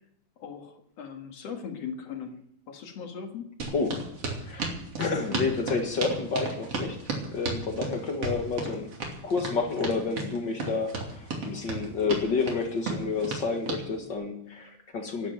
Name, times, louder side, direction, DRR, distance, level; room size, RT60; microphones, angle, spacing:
voice 1, 0.4-2.4 2.7-3.5, left 6 dB, 60° left, 4 dB, 2.6 m, -39 dB
sound 1, 3.6-13.8, right 3 dB, 55° right, 3.7 m, -33 dB
voice 2, 5.0-7.0 7.3-8.9 9.2-15.3, left 4 dB, 45° left, 4 dB, 2.0 m, -29 dB
12.0 x 11.0 x 9.2 m, 0.76 s
omnidirectional pair, 3.4 m